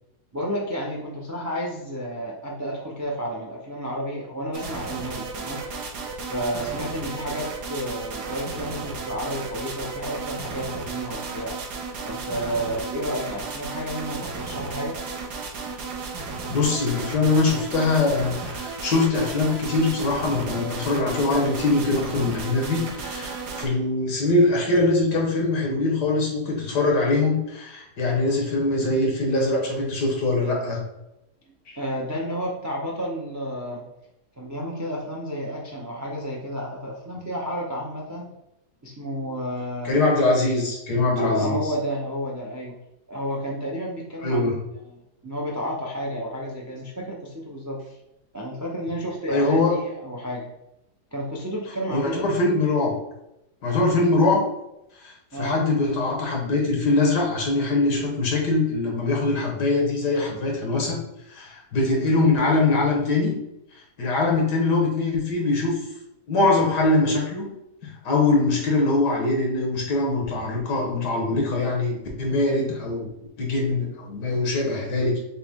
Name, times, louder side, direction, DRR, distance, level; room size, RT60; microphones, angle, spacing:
voice 1, 0.3-5.9 6.3-11.6 12.0-15.0 31.4-33.9 34.4-38.4 38.8-40.1 41.2-42.8 43.1-44.5 44.8-47.8 48.3-50.5 51.1-52.2 55.3-55.6, equal, 25° right, -2 dB, 0.3 m, -31 dB
sound 1, 4.5-23.7, right 4 dB, 75° right, 1.4 m, -34 dB
voice 2, 16.5-30.8 31.7-31.8 39.8-41.6 44.2-44.6 49.3-49.7 51.9-52.9 53.6-54.5 55.0-61.0 61.3-63.3 63.8-65.8 66.3-67.5 67.8-73.1 73.4-75.2, left 2 dB, 75° left, -1 dB, 1.9 m, -22 dB
6.6 x 2.2 x 3.6 m, 0.88 s
omnidirectional pair, 1.8 m